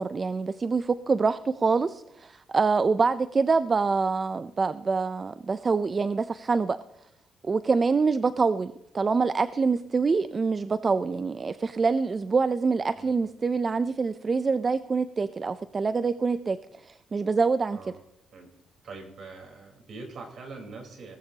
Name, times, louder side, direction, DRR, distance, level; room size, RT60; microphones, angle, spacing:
voice 1, 0.0-6.8 7.4-16.6 16.8-17.8, right 4 dB, 35° right, 14 dB, 0.5 m, -25 dB
voice 2, 18.8-21.2, right 3 dB, 60° right, 2 dB, 4.0 m, -43 dB
18.5 x 14.5 x 2.9 m, 0.85 s
cardioid pair, 90°, 0 cm